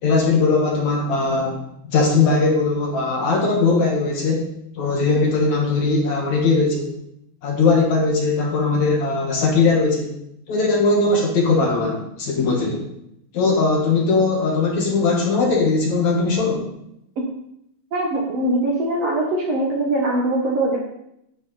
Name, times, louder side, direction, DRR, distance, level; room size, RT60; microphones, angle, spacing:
voice 1, 0.0-1.6 1.9-4.5 4.8-7.0 7.4-10.2 10.5-12.8 13.3-16.6, left 3 dB, 60° left, 0 dB, 2.5 m, -19 dB
voice 2, 17.9-20.8, right 1 dB, 55° right, -2 dB, 1.9 m, -22 dB
10.5 x 8.4 x 4.1 m, 0.78 s
omnidirectional pair, 4.4 m